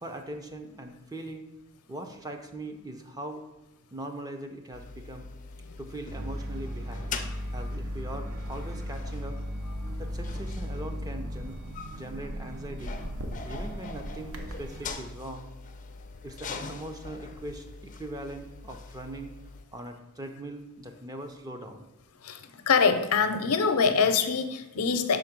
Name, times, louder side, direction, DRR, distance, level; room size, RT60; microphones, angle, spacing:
voice 1, 0.0-1.5 1.9-3.4 3.9-5.3 5.8-7.1 7.5-9.4 10.0-13.0 13.4-15.5 16.2-19.3 19.7-21.9, right 1 dB, 15° right, 5 dB, 0.5 m, -41 dB
sound 1, 4.7-19.6, left 5 dB, 35° left, 0.4 m, -43 dB
sound 2, 6.1-11.4, left 1 dB, 45° right, 1.3 m, -35 dB
sound 3, 6.2-14.9, equal, 65° right, 0.7 m, -41 dB
voice 2, 22.7-25.2, left 5 dB, 80° left, 8 dB, 0.6 m, -24 dB
5.4 x 3.8 x 5.9 m, 0.98 s
head